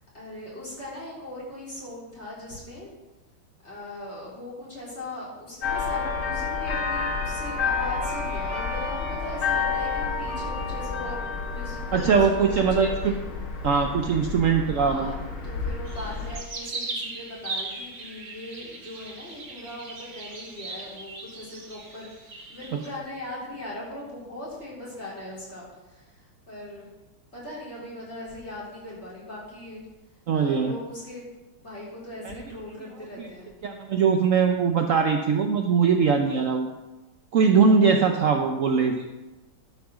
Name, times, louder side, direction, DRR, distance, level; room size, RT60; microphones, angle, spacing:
voice 1, 0.1-2.9 3.6-11.2 11.5-13.2 14.7-15.1 15.4-26.9 27.3-29.8 30.3-31.3 31.6-33.5, left 1 dB, 30° left, -6 dB, 3.7 m, -39 dB
sound 1, 5.6-16.4, left 4 dB, 80° left, 2.2 m, -30 dB
voice 2, 11.9-13.1 13.6-15.1 30.3-30.7 32.2-32.3 33.2-33.3 33.6-36.7 37.3-39.1, right 5 dB, 80° right, 4 dB, 0.7 m, -21 dB
sound 2, 15.9-23.0, right 3 dB, 40° right, 1.7 m, -38 dB
12.0 x 5.6 x 6.1 m, 1.1 s
omnidirectional pair, 2.3 m